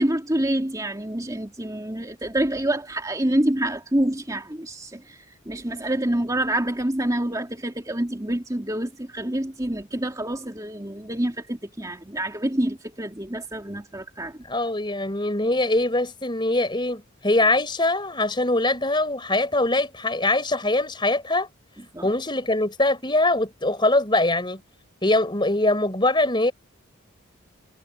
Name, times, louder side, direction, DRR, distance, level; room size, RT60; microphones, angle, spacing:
voice 1, 0.0-5.2 5.5-14.4 21.9-22.1, right 1 dB, 15° right, 2.7 m, -27 dB
voice 2, 14.4-21.5 22.0-24.6 25.0-26.5, left 2 dB, 20° left, 4.5 m, -22 dB
head